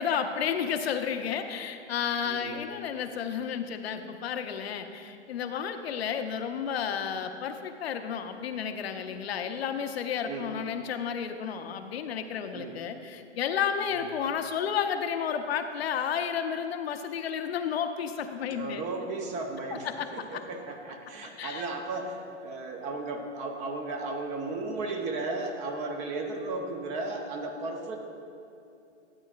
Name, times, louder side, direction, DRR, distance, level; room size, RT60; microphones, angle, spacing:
voice 1, 0.0-18.8 19.7-20.4 21.4-21.7, left 7 dB, 60° left, 8 dB, 0.7 m, -32 dB
voice 2, 2.2-2.7 10.2-10.5 12.5-12.8 13.9-14.1 18.5-28.0, right 3 dB, 20° right, 4 dB, 0.6 m, -35 dB
12.5 x 9.0 x 2.4 m, 2.7 s
hypercardioid pair, 125°, 36 cm